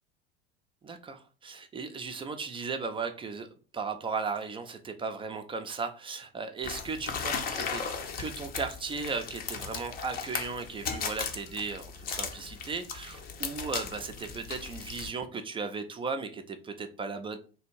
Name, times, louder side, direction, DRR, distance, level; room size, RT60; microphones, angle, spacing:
voice 1, 0.8-7.8 8.2-17.4, right 4 dB, 15° right, 7 dB, 0.5 m, -36 dB
sound 1, 6.6-15.1, left 6 dB, 30° left, 0.7 m, -37 dB
3.4 x 2.5 x 4.5 m, 0.39 s
figure-of-eight pair, 75°, 29 cm